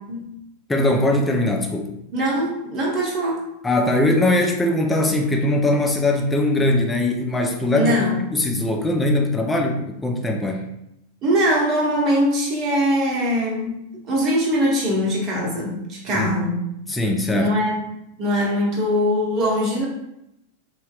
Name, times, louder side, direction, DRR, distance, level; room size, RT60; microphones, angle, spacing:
voice 1, 0.7-1.9 3.6-8.0 8.3-10.7 16.1-16.3 16.9-17.5, left 1 dB, 10° left, 2 dB, 0.4 m, -21 dB
voice 2, 2.1-3.4 7.7-8.3 11.2-13.8 14.1-16.6 17.3-17.8 18.2-19.9, equal, 35° right, -3 dB, 0.9 m, -21 dB
3.1 x 2.8 x 2.3 m, 0.83 s
figure-of-eight pair, 90°, 0 cm